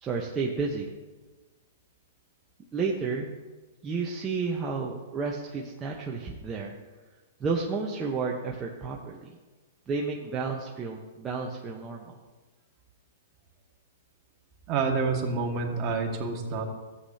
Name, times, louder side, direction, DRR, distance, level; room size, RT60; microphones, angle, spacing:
voice 1, 0.0-0.9 2.7-3.3 3.8-6.7 7.4-9.3 9.9-12.2, right 4 dB, 20° right, -2 dB, 1.0 m, -31 dB
voice 2, 14.7-16.7, right 4 dB, 40° right, 1 dB, 1.9 m, -28 dB
14.0 x 8.3 x 2.9 m, 1.3 s
hypercardioid pair, 125°, 0 cm